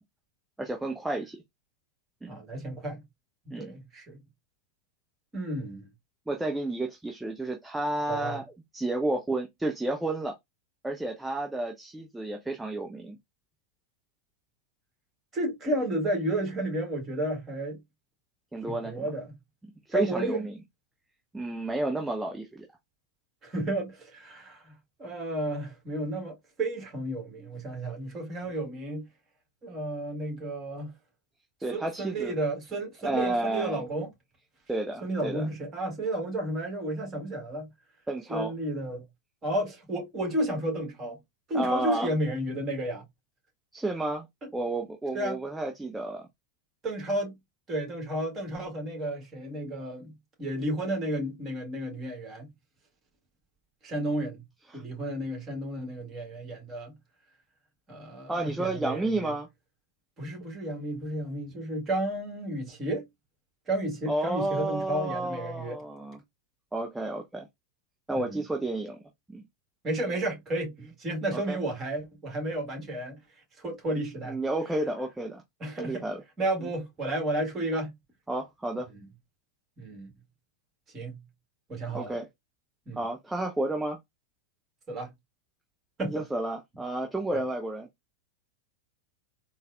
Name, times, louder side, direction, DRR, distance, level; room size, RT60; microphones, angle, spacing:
voice 1, 0.6-1.4 2.2-2.3 3.5-3.8 6.3-8.4 8.7-10.4 10.8-13.2 18.5-19.1 19.9-20.6 21.3-22.7 31.6-32.3 33.0-33.8 34.7-35.5 38.1-38.5 41.5-42.1 43.7-44.3 44.5-46.3 54.7-54.8 58.3-59.5 64.1-66.2 66.7-67.5 68.1-69.0 69.3-69.4 71.3-71.6 74.3-75.4 75.8-76.2 76.6-76.7 78.3-78.9 81.9-82.3 83.0-84.0 86.1-87.9, right 2 dB, 5° right, 0.6 m, -31 dB
voice 2, 2.3-3.0 3.4-4.2 5.3-5.9 8.1-8.4 15.3-17.8 18.6-19.3 19.9-20.5 23.4-24.7 25.0-29.1 29.6-30.9 31.7-34.1 35.0-37.7 38.3-39.0 39.4-41.2 41.5-43.0 45.1-45.4 46.8-47.4 47.7-52.5 53.8-54.4 54.7-57.0 57.9-59.3 60.2-63.1 63.7-65.8 68.1-68.4 69.8-73.2 73.6-74.4 75.6-76.1 76.4-77.9 78.9-79.0 79.8-80.1 80.9-81.2 81.7-82.1 82.9-83.0 84.9-85.1 86.0-86.2 87.3-87.4, right 1 dB, 25° right, 1.7 m, -32 dB
3.9 x 2.2 x 2.5 m
figure-of-eight pair, 90°, 0 cm